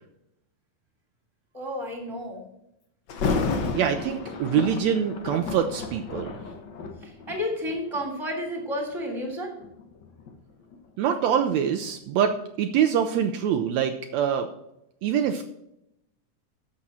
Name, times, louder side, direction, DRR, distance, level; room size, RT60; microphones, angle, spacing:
voice 1, 1.5-2.4 7.0-9.6, left 1 dB, 10° right, 0 dB, 2.5 m, -31 dB
Thunder, 3.1-8.1 8.7-8.9 9.6-12.4 12.7-12.8, left 4 dB, 65° left, 1.1 m, -32 dB
voice 2, 3.7-6.4 11.0-14.5 15.0-15.4, right 8 dB, 75° right, 6 dB, 1.8 m, -24 dB
11.5 x 7.3 x 4.2 m, 0.82 s
omnidirectional pair, 3.4 m